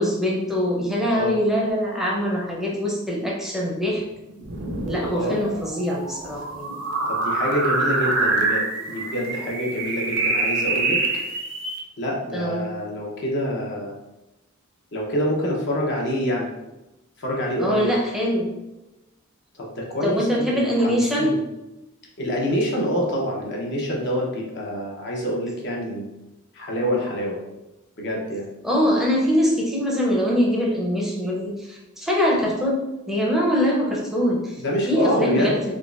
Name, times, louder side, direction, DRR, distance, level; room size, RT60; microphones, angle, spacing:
voice 1, 0.0-4.0 4.9-7.0 12.3-12.7 17.6-18.5 20.0-21.3 28.6-35.6, equal, ahead, -3 dB, 0.6 m, -23 dB
sound 1, 4.4-11.8, right 3 dB, 60° right, 0.6 m, -26 dB
voice 2, 7.1-11.0 12.0-14.0 14.9-16.5 17.2-17.9 19.5-20.5 20.8-21.4 22.2-26.1 26.5-27.4 28.0-28.5 34.6-35.6, equal, 55° left, -2 dB, 0.8 m, -26 dB
3.7 x 3.0 x 2.4 m, 0.99 s
head